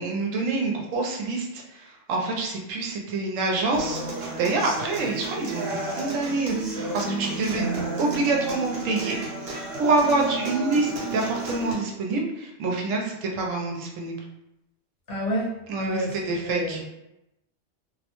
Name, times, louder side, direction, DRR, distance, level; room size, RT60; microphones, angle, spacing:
voice 1, 0.0-7.7 8.0-9.2 9.5-14.2 15.7-16.8, right 3 dB, 85° right, 0 dB, 1.0 m, -26 dB
Human voice / Acoustic guitar, 3.7-11.7, right 2 dB, 55° right, 0.9 m, -32 dB
voice 2, 15.1-16.2 16.4-16.8, equal, 60° left, -4 dB, 0.9 m, -29 dB
2.4 x 2.1 x 2.8 m, 0.87 s
omnidirectional pair, 1.3 m